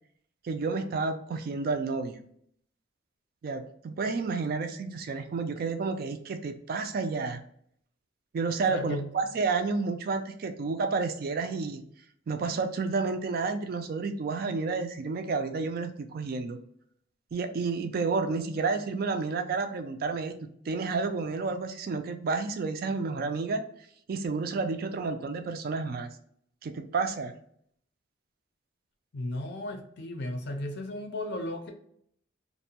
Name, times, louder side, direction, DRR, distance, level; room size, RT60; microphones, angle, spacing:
voice 1, 0.4-2.2 3.4-7.4 8.3-11.8 12.3-16.6 17.3-20.4 20.7-23.6 24.1-26.1 26.6-27.4, right 4 dB, 50° right, 8 dB, 0.3 m, -30 dB
voice 2, 8.7-9.0 29.1-31.7, left 1 dB, 60° left, 5 dB, 0.5 m, -35 dB
2.6 x 2.1 x 2.8 m, 0.67 s
head